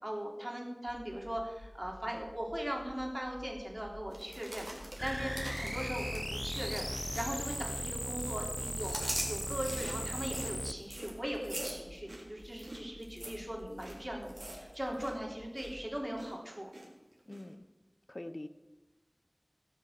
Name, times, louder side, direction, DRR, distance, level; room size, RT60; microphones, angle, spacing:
voice 1, 0.0-6.9 7.1-16.7, equal, 25° right, 0 dB, 3.7 m, -39 dB
sound 1, 0.9-16.0, left 1 dB, 70° left, 6.5 m, -54 dB
sound 2, 4.1-7.9 8.2-15.1 15.4-15.7 16.2-16.9 17.3-17.4, right 1 dB, 80° right, 3.6 m, -43 dB
sound 3, 5.0-10.7, equal, 15° left, 0.7 m, -37 dB
voice 2, 17.3-17.6 18.1-18.5, left 1 dB, 50° left, 11 dB, 0.6 m, -43 dB
18.0 x 7.5 x 7.5 m, 1.1 s
wide cardioid pair, 45°, 0 cm